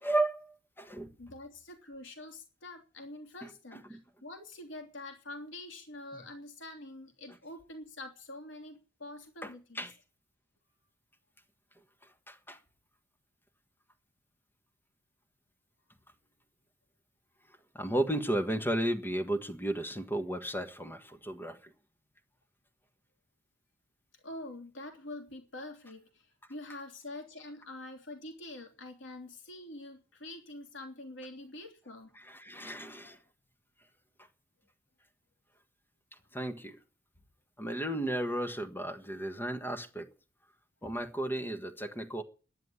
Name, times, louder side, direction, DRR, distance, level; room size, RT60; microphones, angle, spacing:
voice 1, 0.0-1.1 3.4-4.0 6.1-6.2 9.4-9.9 12.3-12.6 17.7-21.6 32.3-33.2 36.3-36.8 37.6-40.1 40.8-42.2, right 1 dB, 10° left, 1.5 m, -34 dB
voice 2, 1.2-9.9 24.2-32.1, left 2 dB, 65° left, 3.3 m, -46 dB
11.5 x 10.5 x 8.7 m
head